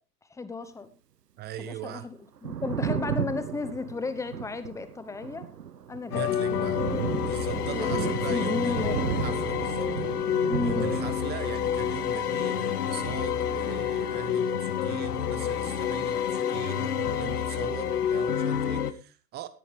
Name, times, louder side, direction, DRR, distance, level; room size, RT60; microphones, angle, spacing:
voice 1, 0.3-0.9 1.6-5.5 5.9-6.2 6.5-6.8 7.5-9.1 10.5-10.9, left 3 dB, 5° left, 1.0 m, -34 dB
voice 2, 1.4-2.1 6.1-6.8 7.2-19.5, right 11 dB, 20° right, 0.6 m, -40 dB
Thunder, 2.2-16.7 16.9-18.2, right 8 dB, 85° right, 0.8 m, -35 dB
sound 1, 6.1-18.9, left 9 dB, 75° left, 1.0 m, -28 dB
17.0 x 10.5 x 3.4 m
figure-of-eight pair, 95°, 47 cm